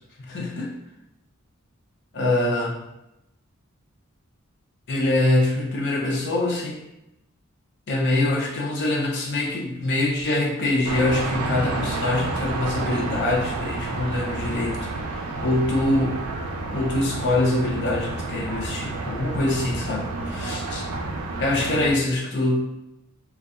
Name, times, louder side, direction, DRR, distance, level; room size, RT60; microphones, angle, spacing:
voice 1, 0.2-0.7 2.1-2.8 4.9-6.8 7.9-16.2 16.7-20.8 21.4-22.6, left 2 dB, 55° left, -2 dB, 0.6 m, -24 dB
sound 1, 10.9-21.9, right 3 dB, 85° right, 0.4 m, -30 dB
2.7 x 2.2 x 2.4 m, 0.88 s
head